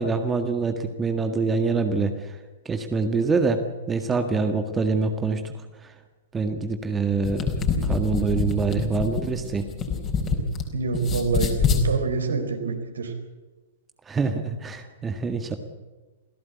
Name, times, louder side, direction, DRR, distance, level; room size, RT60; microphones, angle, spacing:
voice 1, 0.0-2.3 2.6-3.6 3.9-5.5 6.3-7.5 7.8-9.6 14.1-15.6, right 4 dB, 15° right, 6 dB, 1.8 m, -25 dB
sound 1, 7.1-10.6 10.9-11.8, left 5 dB, 25° left, 4.7 m, -25 dB
voice 2, 10.7-13.2, right 4 dB, 65° right, 6 dB, 4.5 m, -26 dB
27.5 x 17.0 x 8.4 m, 1.2 s
figure-of-eight pair, 105°, 0 cm